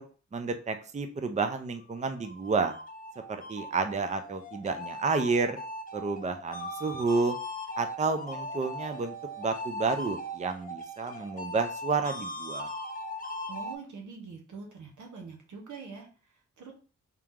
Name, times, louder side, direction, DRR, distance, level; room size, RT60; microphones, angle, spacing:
voice 1, 0.3-2.7 3.5-5.6 5.9-7.3 7.8-12.7, right 4 dB, 25° right, 7 dB, 0.5 m, -30 dB
sound 1, 2.0-13.7, left 1 dB, 30° left, 0.6 m, -39 dB
voice 2, 13.5-16.7, right 5 dB, 90° right, 1 dB, 1.2 m, -44 dB
3.6 x 2.9 x 3.6 m, 0.38 s
cardioid pair, 80°, 29 cm